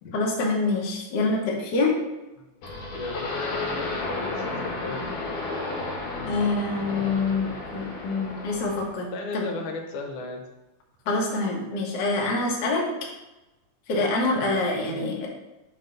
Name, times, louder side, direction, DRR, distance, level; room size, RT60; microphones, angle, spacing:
voice 1, 0.1-1.9 6.3-9.5 11.0-12.8 13.9-15.3, left 3 dB, 55° left, -2 dB, 1.2 m, -26 dB
voice 2, 2.4-5.0 9.1-10.4 14.8-15.0, left 3 dB, 90° left, 3 dB, 2.4 m, -36 dB
sound 1, 2.6-8.9, left 2 dB, 70° left, 2.4 m, -32 dB
6.2 x 3.4 x 5.3 m, 1.0 s
omnidirectional pair, 3.4 m